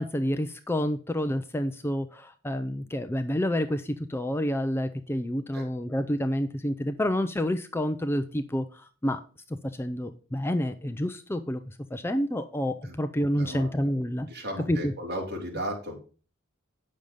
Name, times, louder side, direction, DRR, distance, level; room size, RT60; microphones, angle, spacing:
voice 1, 0.0-9.2 9.5-14.3 14.7-14.9, equal, 10° left, 8 dB, 0.5 m, -29 dB
voice 2, 13.3-13.7 14.3-16.0, equal, 50° right, -1 dB, 3.5 m, -35 dB
9.0 x 6.4 x 5.3 m, 0.38 s
head